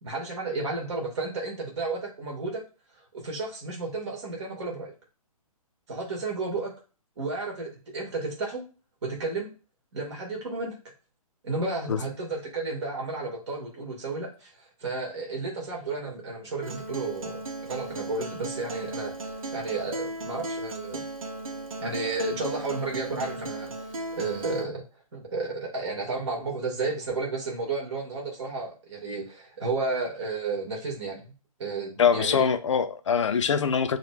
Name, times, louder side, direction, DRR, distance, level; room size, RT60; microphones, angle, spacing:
voice 1, 0.0-2.6 3.1-4.9 5.9-6.7 7.2-8.6 9.0-9.5 9.9-10.8 11.4-21.0 21.8-24.8 25.1-31.2 31.6-32.5, right 3 dB, 50° right, 2.2 m, -32 dB
Acoustic guitar, 16.6-24.6, right 2 dB, 65° right, 0.8 m, -36 dB
voice 2, 32.0-34.0, left 7 dB, 55° left, 0.5 m, -23 dB
6.0 x 3.1 x 2.5 m
figure-of-eight pair, 130°, 19 cm